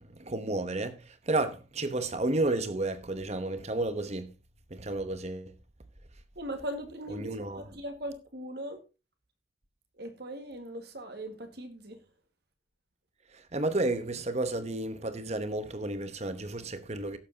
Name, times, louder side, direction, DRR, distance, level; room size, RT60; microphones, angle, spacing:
voice 1, 0.0-4.3 4.7-5.6 7.1-7.6 13.3-17.2, right 2 dB, 35° right, 1.0 m, -32 dB
voice 2, 6.4-8.8 10.0-12.0, right 1 dB, 55° right, 1.8 m, -39 dB
17.0 x 7.4 x 2.8 m
head